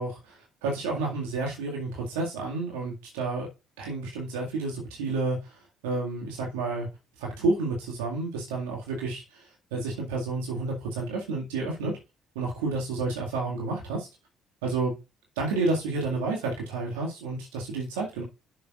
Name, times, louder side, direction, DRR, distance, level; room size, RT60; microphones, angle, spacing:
voice 1, 0.0-3.5 3.8-6.9 7.2-12.0 12.4-14.1 14.6-14.9 15.4-18.2, right 3 dB, 80° right, -1 dB, 2.0 m, -30 dB
11.0 x 6.8 x 2.5 m, 0.27 s
hypercardioid pair, 50°, 0 cm